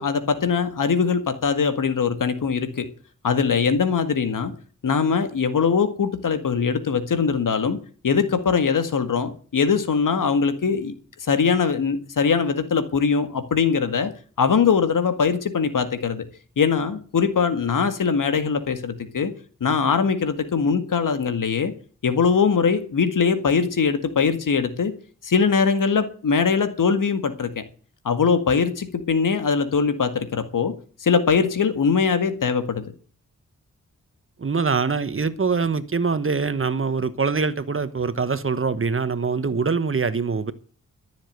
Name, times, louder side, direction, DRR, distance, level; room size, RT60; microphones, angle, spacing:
voice 1, 0.0-2.9 3.2-4.5 4.8-7.8 8.0-10.9 11.2-14.1 14.4-16.2 16.6-19.3 19.6-21.7 22.0-24.9 25.2-27.6 28.0-30.7 31.0-32.8, left 5 dB, 80° left, 1.9 m, -21 dB
voice 2, 34.4-40.5, right 4 dB, 40° right, 1.3 m, -24 dB
13.5 x 7.3 x 8.0 m
cardioid pair, 60°, 32 cm